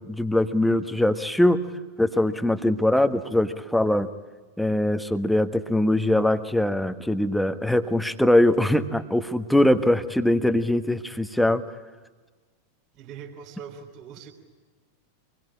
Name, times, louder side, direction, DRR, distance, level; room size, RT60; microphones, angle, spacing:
voice 1, 0.0-1.6 2.0-4.1 4.6-11.6, left 1 dB, ahead, 10 dB, 1.4 m, -22 dB
voice 2, 12.9-14.3, right 7 dB, 40° right, 1 dB, 3.5 m, -42 dB
26.5 x 21.5 x 10.0 m, 1.3 s
figure-of-eight pair, 90°, 0 cm